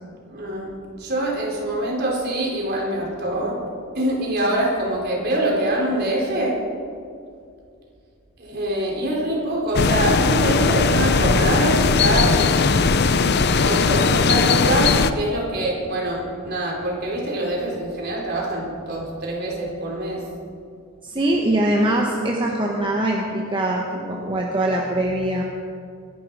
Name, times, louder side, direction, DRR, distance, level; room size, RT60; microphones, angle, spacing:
voice 1, 0.3-0.7 1.0-3.6 3.9-6.6 8.4-12.3 13.6-20.2, right 1 dB, 50° right, -2 dB, 4.0 m, -24 dB
sound 1, 9.7-15.1, left 4 dB, 50° left, 0.6 m, -18 dB
voice 2, 21.0-25.4, right 1 dB, 20° right, -1 dB, 1.2 m, -22 dB
24.5 x 11.5 x 4.9 m, 2.4 s
head